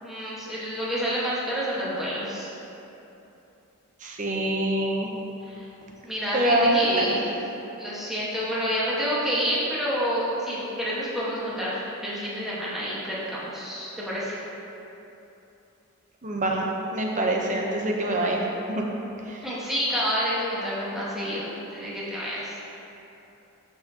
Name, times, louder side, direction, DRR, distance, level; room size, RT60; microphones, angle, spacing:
voice 1, 0.0-2.5 5.5-5.6 6.0-7.2 7.8-14.4 19.4-22.6, equal, ahead, -9 dB, 1.4 m, -28 dB
voice 2, 4.0-5.1 6.3-7.1 16.2-18.8 19.3-19.4, right 1 dB, 35° right, 0 dB, 0.8 m, -25 dB
11.5 x 4.7 x 2.9 m, 3.0 s
head